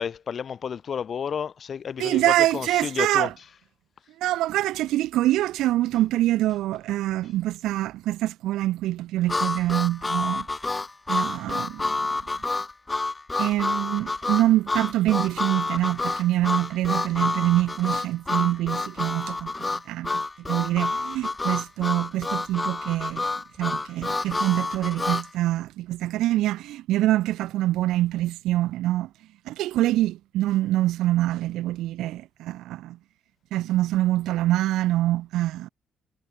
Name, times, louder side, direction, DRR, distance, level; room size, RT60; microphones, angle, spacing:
voice 1, 0.0-3.3, left 7 dB, 50° left, 3.2 m, -31 dB
voice 2, 2.0-3.3 4.2-10.5 11.1-12.0 13.4-23.3 23.6-29.1 29.5-33.0 33.5-35.7, right 15 dB, 90° right, 1.0 m, -25 dB
Harmonica, 9.3-25.3, left 3 dB, 20° left, 2.5 m, -28 dB
cardioid pair, 90°, 0 cm